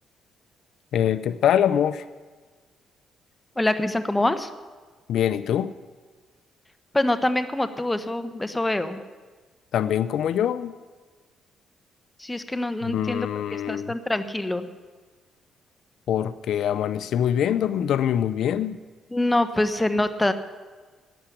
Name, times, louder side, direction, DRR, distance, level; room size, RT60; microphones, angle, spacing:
voice 1, 0.9-2.0 5.1-5.7 9.7-10.7 12.9-13.9 16.1-18.8, left 9 dB, 75° left, 14 dB, 0.5 m, -24 dB
voice 2, 3.6-4.5 6.9-9.0 12.2-13.3 13.7-14.7 19.1-20.3, left 1 dB, 10° left, 10 dB, 1.0 m, -25 dB
12.0 x 8.8 x 9.9 m, 1.4 s
cardioid pair, 90°, 0 cm